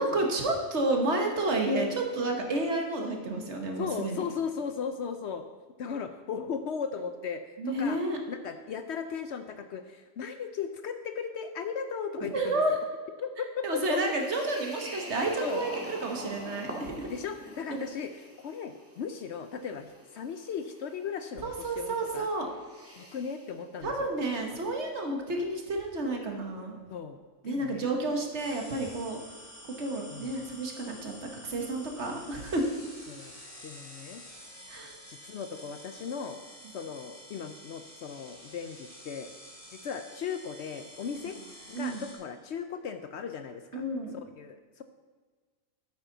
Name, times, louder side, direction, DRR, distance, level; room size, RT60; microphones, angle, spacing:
voice 1, 0.0-4.3 7.6-8.2 12.2-12.8 13.6-17.1 17.7-17.8 21.4-22.5 23.8-26.8 27.4-29.2 29.8-32.6 34.7-34.9 41.7-42.0 43.7-44.2, right 2 dB, 60° right, 2 dB, 1.6 m, -30 dB
voice 2, 3.8-5.4 5.8-8.0 8.3-12.8 13.2-14.0 15.4-15.7 17.1-18.1 18.4-22.3 23.0-24.1 26.9-27.2 27.4-27.9 30.1-30.4 33.1-33.4 33.6-34.2 35.1-36.4 36.7-39.3 39.7-41.4 41.7-43.8 44.4-44.8, left 6 dB, 65° left, 9 dB, 0.8 m, -37 dB
sound 1, 13.7-23.5, right 1 dB, 10° right, 1.5 m, -45 dB
sound 2, 28.4-42.1, equal, 25° left, 2.1 m, -49 dB
9.1 x 8.9 x 3.9 m, 1.4 s
omnidirectional pair, 1.4 m